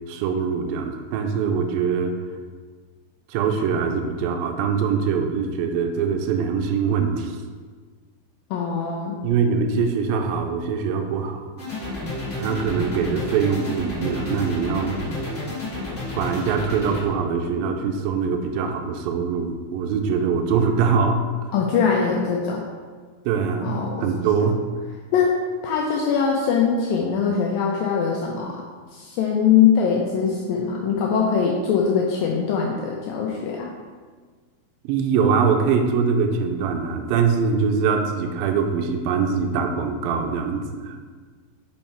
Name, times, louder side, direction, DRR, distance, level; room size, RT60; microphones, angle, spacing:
voice 1, 0.1-2.1 3.3-7.4 9.2-11.5 12.4-15.0 16.2-21.2 23.3-24.6 34.8-41.0, right 6 dB, 85° right, 4 dB, 2.1 m, -23 dB
voice 2, 8.5-9.2 21.5-22.6 23.6-24.0 25.1-25.4 25.6-28.6 28.9-33.7, left 6 dB, 85° left, -1 dB, 2.0 m, -22 dB
sound 1, 11.6-17.0, left 2 dB, 40° left, 1.0 m, -30 dB
5.5 x 5.4 x 4.3 m, 1.5 s
omnidirectional pair, 4.6 m